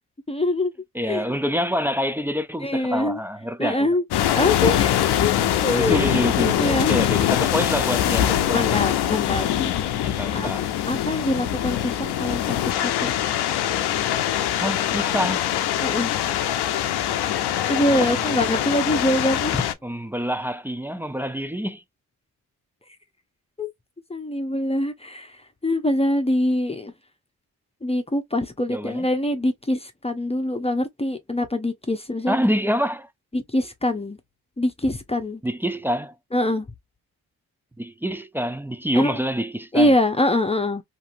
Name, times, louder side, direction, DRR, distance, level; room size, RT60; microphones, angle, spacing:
voice 1, 0.3-0.7 1.0-1.3 2.6-3.2 3.6-4.0 4.3-5.3 5.6-6.3 6.6-7.0 8.5-9.7 10.3-10.5 10.9-13.1 15.8-16.1 17.7-19.6 23.6-23.7 24.1-25.4 25.6-26.9 27.8-32.5 33.3-34.2 34.6-35.4 36.3-36.7 38.9-39.2 39.7-40.8, left 1 dB, 15° left, 0.7 m, -24 dB
voice 2, 0.9-3.9 5.4-5.5 5.7-8.8 10.0-10.7 14.6-15.4 17.9-18.6 19.8-21.8 28.7-29.1 32.3-33.1 35.4-36.1 37.8-39.9, equal, 5° right, 0.3 m, -26 dB
sound 1, 4.1-19.7, left 11 dB, 80° left, 0.6 m, -23 dB
2.8 x 2.6 x 2.5 m
supercardioid pair, 50°, 39 cm